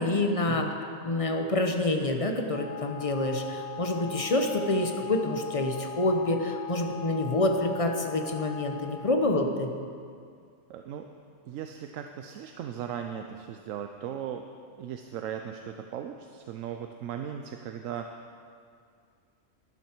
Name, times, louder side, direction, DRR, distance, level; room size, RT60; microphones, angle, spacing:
voice 1, 0.0-9.7, left 2 dB, 30° left, 4 dB, 0.8 m, -27 dB
Wind instrument woodwind instrument, 2.4-9.1, left 7 dB, 10° right, 3.5 m, -40 dB
voice 2, 10.7-11.1 11.5-14.4 14.8-18.4, right 9 dB, 85° right, 5 dB, 1.0 m, -38 dB
12.0 x 11.0 x 4.5 m, 2.2 s
omnidirectional pair, 1.3 m